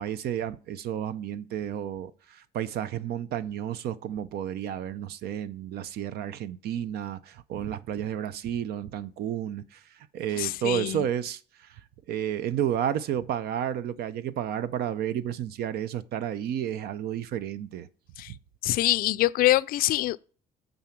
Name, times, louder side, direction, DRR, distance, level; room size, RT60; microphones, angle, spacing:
voice 1, 0.0-11.8 12.1-17.9, right 10 dB, 70° right, 0.6 m, -31 dB
voice 2, 10.4-11.0 18.2-18.3 18.6-20.2, left 16 dB, 60° left, 0.4 m, -24 dB
9.1 x 3.9 x 5.8 m
cardioid pair, 110°, 17 cm